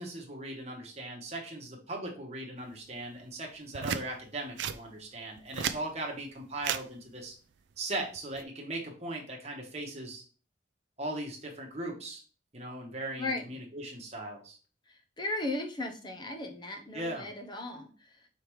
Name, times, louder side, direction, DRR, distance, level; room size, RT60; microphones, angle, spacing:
voice 1, 0.0-7.3 7.8-10.2 11.0-12.2 12.5-14.6 16.9-17.3, right 1 dB, 35° right, 0 dB, 1.1 m, -39 dB
sound 1, 3.7-4.0 4.6-4.8 5.4-5.8 6.6-6.8 8.1-8.4, right 8 dB, 65° right, 0.3 m, -33 dB
voice 2, 14.9-18.3, left 2 dB, 20° left, 5 dB, 0.6 m, -36 dB
4.8 x 3.4 x 3.1 m, 0.38 s
head